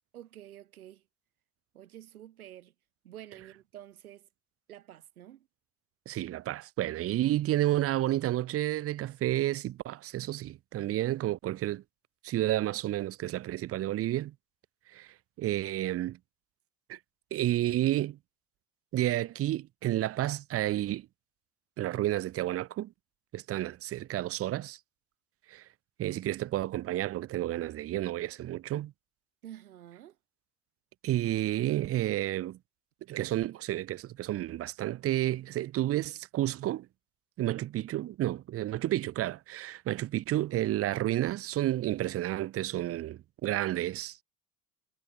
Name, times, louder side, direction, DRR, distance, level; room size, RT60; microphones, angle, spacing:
voice 1, 0.1-1.0 1.7-2.7 3.0-4.3 4.7-5.5 29.4-30.2, right 12 dB, 85° right, 3.6 m, -49 dB
voice 2, 6.1-11.8 12.2-14.3 14.9-16.2 16.9-17.0 17.3-18.2 18.9-21.1 21.8-22.9 23.3-24.8 25.5-25.6 26.0-28.9 31.0-32.6 33.1-36.9 37.4-44.2, right 14 dB, 35° right, 0.5 m, -31 dB
hypercardioid pair, 65°, 42 cm